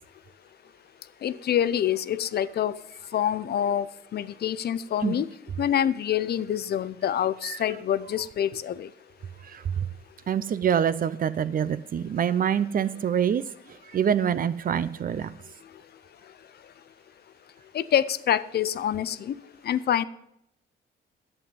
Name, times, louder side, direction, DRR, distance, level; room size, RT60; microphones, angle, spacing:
voice 1, 1.2-2.8 3.1-5.3 5.6-8.9 17.7-19.3 19.6-20.0, left 10 dB, 55° left, 16 dB, 0.6 m, -26 dB
voice 2, 9.5-9.9 10.3-13.4 13.9-15.3, right 8 dB, 45° right, 15 dB, 0.6 m, -25 dB
11.0 x 7.8 x 5.4 m, 0.78 s
cardioid pair, 90°, 20 cm